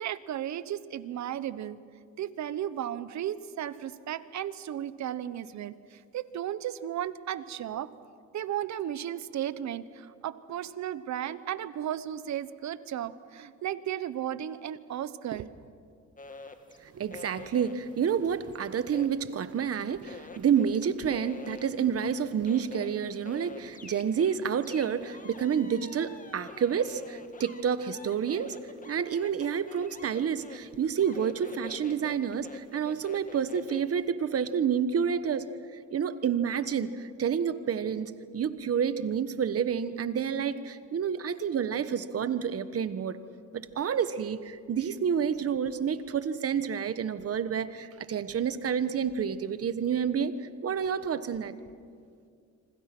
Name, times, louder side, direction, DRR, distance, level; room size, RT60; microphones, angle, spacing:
voice 1, 0.0-1.8 2.2-7.9 8.3-15.5, right 11 dB, 65° right, 15 dB, 1.1 m, -35 dB
sound 1, 16.2-19.7 20.0-33.9, left 4 dB, 25° left, 2.1 m, -47 dB
voice 2, 16.8-28.5 28.9-35.5 35.9-43.2 43.5-50.3 50.6-51.5, right 7 dB, 50° right, 12 dB, 1.3 m, -29 dB
26.5 x 26.0 x 6.1 m, 2.2 s
cardioid pair, 90°, 30 cm